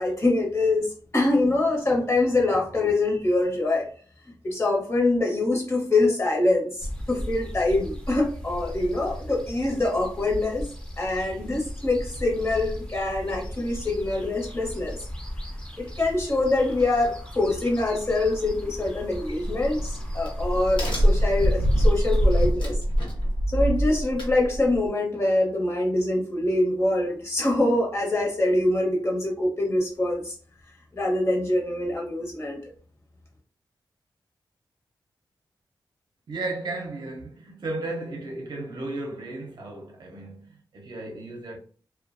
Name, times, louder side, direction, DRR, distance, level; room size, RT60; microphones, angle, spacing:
voice 1, 0.0-3.9 4.4-10.7 11.0-15.0 15.8-22.8 23.5-30.3 30.9-32.6, left 2 dB, 35° left, 0.9 m, -24 dB
sound 1, 6.8-22.5, equal, 10° left, 0.6 m, -37 dB
Crack, 19.4-24.9, equal, 70° left, 1.1 m, -23 dB
voice 2, 36.3-41.6, right 2 dB, 60° right, 0.6 m, -34 dB
2.3 x 2.2 x 2.5 m
wide cardioid pair, 100°, 8 cm